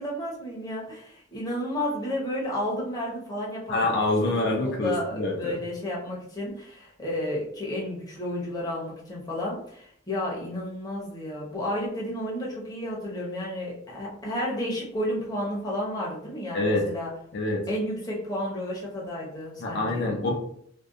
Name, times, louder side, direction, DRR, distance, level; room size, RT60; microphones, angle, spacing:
voice 1, 0.0-3.8 4.2-17.1 17.7-20.1, left 1 dB, 20° left, -5 dB, 0.7 m, -32 dB
voice 2, 3.7-5.5 16.5-16.9 17.3-17.6 19.6-20.3, left 2 dB, 60° left, -1 dB, 0.5 m, -26 dB
2.6 x 2.2 x 2.3 m, 0.65 s
head